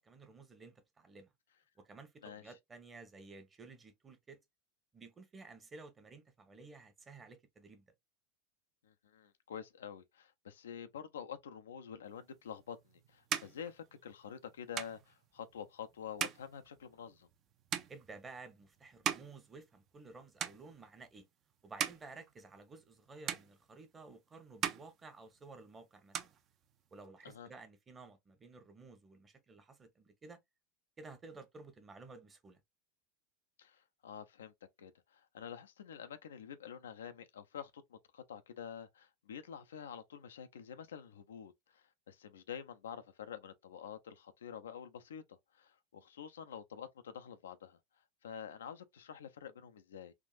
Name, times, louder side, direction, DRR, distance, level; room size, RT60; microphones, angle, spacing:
voice 1, 0.0-1.3 1.8-4.4 4.9-7.9 17.9-21.3 21.6-26.2 26.9-30.4 31.0-32.6, right 3 dB, 20° right, 1.0 m, -54 dB
voice 2, 2.2-2.5 8.8-17.3 27.2-27.5 33.6-34.5 34.8-47.8 48.2-50.1, left 8 dB, 85° left, 0.5 m, -48 dB
sound 1, 12.4-20.1 20.4-21.1 21.5-23.0 23.3-24.1 24.4-25.7 25.9-27.1, right 9 dB, 40° right, 0.6 m, -42 dB
3.6 x 2.5 x 2.4 m
hypercardioid pair, 95°, 0 cm